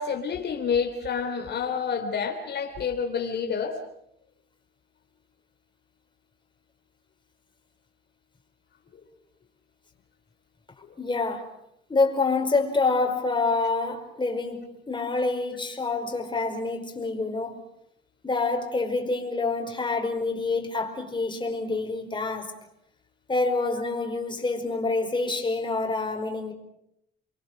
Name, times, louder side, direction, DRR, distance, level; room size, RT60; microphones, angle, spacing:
voice 1, 0.0-3.8, left 6 dB, 60° left, 3.2 m, -28 dB
voice 2, 11.0-11.5 11.9-17.6 18.2-22.5 23.3-26.5, left 3 dB, 25° left, 5.2 m, -27 dB
29.5 x 23.0 x 6.5 m
cardioid pair, 90°, 20 cm